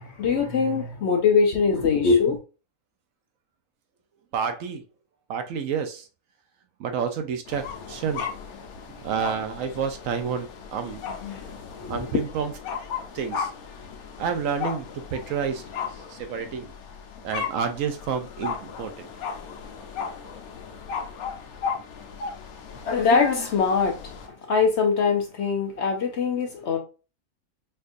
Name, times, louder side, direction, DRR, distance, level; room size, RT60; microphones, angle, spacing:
voice 1, 0.2-2.4 11.2-11.4 11.8-12.2 22.9-23.9 24.5-26.8, left 5 dB, 60° left, 0.7 m, -22 dB
voice 2, 4.3-4.8 5.3-6.1 6.8-8.2 8.9-11.0 11.9-12.8 13.1-13.5 14.2-15.6 16.1-16.7 17.2-19.1, right 6 dB, 70° right, 0.9 m, -29 dB
sound 1, 7.5-24.3, left 6 dB, 80° left, 1.2 m, -36 dB
4.4 x 2.5 x 2.4 m
omnidirectional pair, 1.5 m